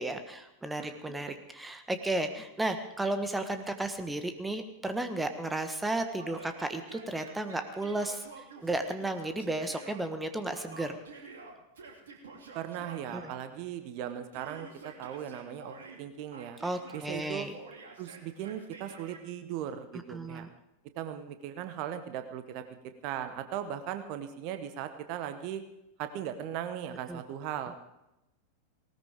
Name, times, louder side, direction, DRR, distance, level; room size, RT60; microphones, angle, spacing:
voice 1, 0.0-10.9 13.1-13.3 16.6-17.5 20.1-20.5 27.1-27.2, right 2 dB, 10° right, 8 dB, 1.3 m, -34 dB
voice 2, 0.8-1.1 12.5-16.6 16.9-17.5 18.0-20.5 21.0-25.6 26.0-27.7, right 10 dB, 45° right, 9 dB, 1.2 m, -38 dB
Yell, 6.1-10.0 10.5-13.4 14.3-16.0 16.3-19.2, right 4 dB, 65° right, 3.1 m, -49 dB
19.0 x 18.5 x 3.6 m, 0.90 s
figure-of-eight pair, 90°, 0 cm